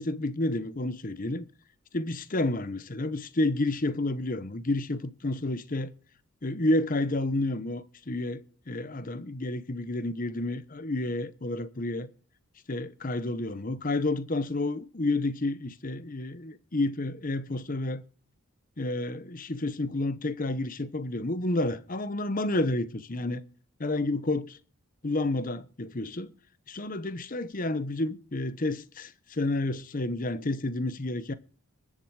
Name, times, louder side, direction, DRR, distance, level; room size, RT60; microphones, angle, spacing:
voice 1, 0.0-1.5 1.9-5.9 6.4-12.1 12.7-18.0 18.8-23.4 23.8-24.6 25.0-26.3 26.7-31.3, left 2 dB, 40° left, 0.9 m, -30 dB
21.5 x 7.5 x 4.8 m
head